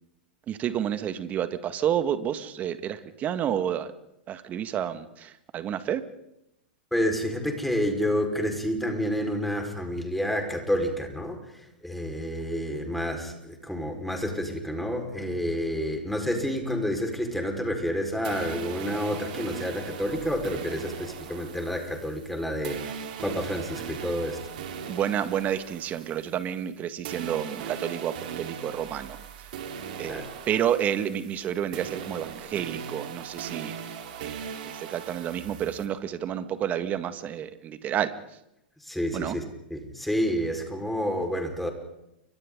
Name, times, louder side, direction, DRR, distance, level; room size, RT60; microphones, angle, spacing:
voice 1, 0.5-3.9 4.3-6.1 24.9-29.5 30.0-38.2 39.1-39.4, right 10 dB, 30° right, 11 dB, 1.9 m, -30 dB
voice 2, 6.9-24.4 30.0-30.2 38.8-39.4 39.7-41.7, equal, ahead, 3 dB, 5.0 m, -29 dB
sound 1, 18.2-26.8 27.0-35.9, right 7 dB, 60° right, 4.1 m, -39 dB
30.0 x 25.5 x 4.0 m, 0.83 s
hypercardioid pair, 100°, 5 cm